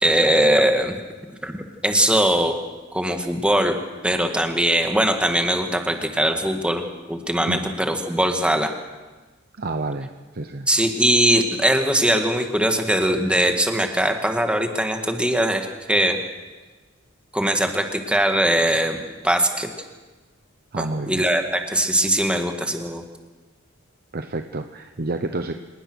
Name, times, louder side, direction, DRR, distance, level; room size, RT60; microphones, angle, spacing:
voice 1, 0.0-1.0 1.4-2.5 2.9-3.7 4.0-8.7 10.7-16.2 17.3-19.7 21.1-23.0, right 1 dB, 5° right, 4 dB, 2.0 m, -21 dB
voice 2, 9.6-10.7 20.7-21.2 24.1-25.5, right 2 dB, 50° right, 7 dB, 0.9 m, -29 dB
26.5 x 19.5 x 6.4 m, 1.3 s
head